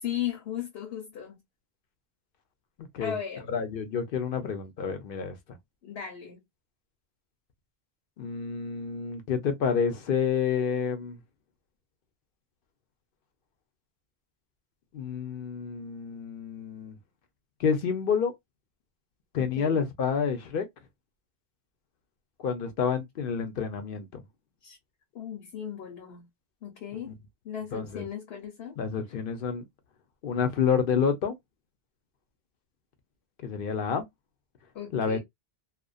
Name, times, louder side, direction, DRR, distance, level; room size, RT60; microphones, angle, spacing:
voice 1, 0.0-1.4 3.0-3.5 5.8-6.4 19.4-19.9 24.6-24.8 25.1-26.3 26.6-27.1 27.4-28.8 34.7-35.2, left 9 dB, 80° left, 1.1 m, -36 dB
voice 2, 2.8-3.1 3.5-5.4 8.2-11.2 14.9-17.0 17.6-18.3 19.3-20.7 22.4-24.2 27.7-28.0 28.8-29.6 30.2-31.3 33.4-34.1 34.9-35.2, left 6 dB, 60° left, 0.8 m, -29 dB
2.5 x 2.2 x 2.3 m
omnidirectional pair, 1.1 m